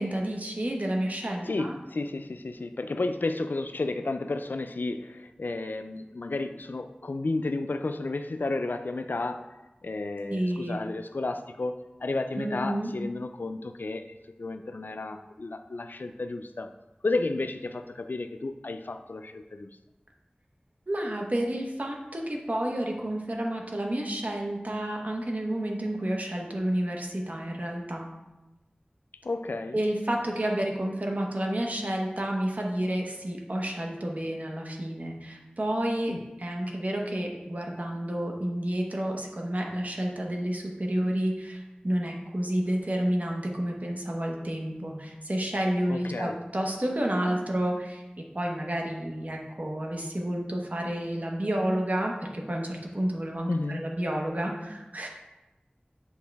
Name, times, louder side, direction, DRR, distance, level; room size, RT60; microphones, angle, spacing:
voice 1, 0.0-1.7 10.3-10.8 12.4-12.9 20.9-28.1 29.7-48.0 48.3-55.1, right 1 dB, 55° right, 0 dB, 1.1 m, -30 dB
voice 2, 1.4-9.5 9.8-14.1 14.4-16.7 17.0-19.7 29.2-29.8 36.1-36.2 45.9-46.4 53.5-53.9, left 2 dB, 90° left, 8 dB, 0.4 m, -32 dB
7.2 x 4.6 x 3.4 m, 1.0 s
wide cardioid pair, 45°, 3 cm